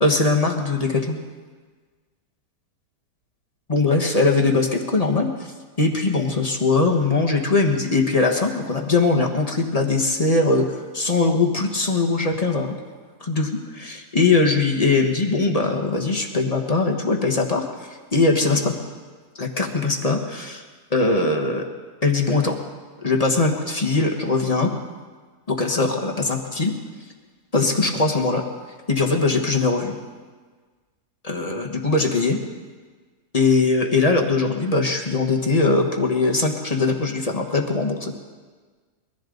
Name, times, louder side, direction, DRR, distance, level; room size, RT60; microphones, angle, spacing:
voice 1, 0.0-1.2 3.7-5.5 5.8-12.7 13.2-18.7 19.4-20.6 20.9-21.6 22.0-22.6 23.0-24.7 25.5-26.7 27.5-28.4 28.9-30.0 31.2-32.4 33.3-38.1, left 3 dB, 25° left, 2 dB, 1.3 m, -21 dB
22.5 x 14.0 x 3.9 m, 1.4 s
omnidirectional pair, 1.7 m